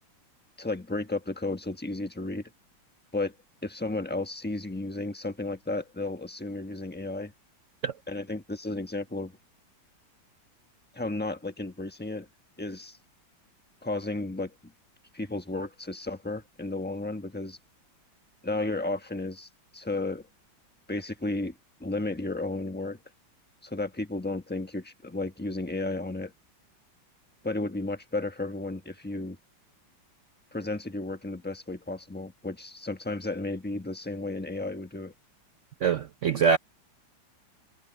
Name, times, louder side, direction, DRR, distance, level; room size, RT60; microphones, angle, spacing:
voice 1, 0.6-2.5 3.1-3.3 3.6-7.3 8.1-9.4 10.9-12.3 12.6-13.0 13.8-14.7 15.1-17.6 18.4-20.3 20.9-23.0 23.6-26.3 27.4-29.4 30.5-35.1, left 2 dB, 5° left, 1.0 m, -33 dB
voice 2, 35.8-36.6, right 6 dB, 70° right, 0.7 m, -24 dB
omnidirectional pair, 2.1 m